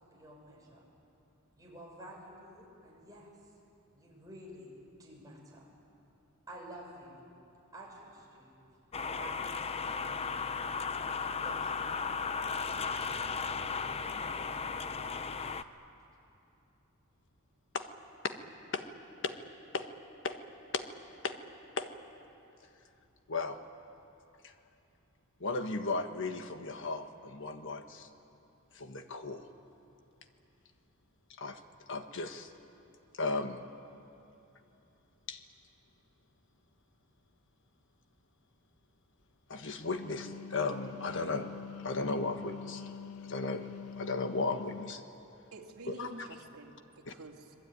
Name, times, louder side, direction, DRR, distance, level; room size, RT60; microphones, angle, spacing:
voice 1, 0.1-0.9 1.6-3.5 3.9-5.7 6.5-7.2 7.7-8.5 9.2-10.6 11.4-12.1 12.7-13.7 14.3-14.4, right 1 dB, 15° right, -3 dB, 6.4 m, -51 dB
sound 1, 8.9-15.6, left 5 dB, 25° left, 0.6 m, -35 dB
voice 2, 23.3-23.6 25.4-28.1 28.7-29.4 31.4-31.6 31.9-32.5 33.2-33.6 35.3-35.4 39.5-41.5 41.8-42.8 43.2-43.7 44.0-45.0 45.9-46.3 47.1-47.2, left 3 dB, 60° left, 7 dB, 1.5 m, -35 dB
Wind instrument woodwind instrument, 39.7-45.0, left 6 dB, 80° left, 0.5 m, -45 dB
voice 3, 45.5-47.5, right 2 dB, 75° right, -1 dB, 2.8 m, -48 dB
26.0 x 21.0 x 9.5 m, 2.9 s
head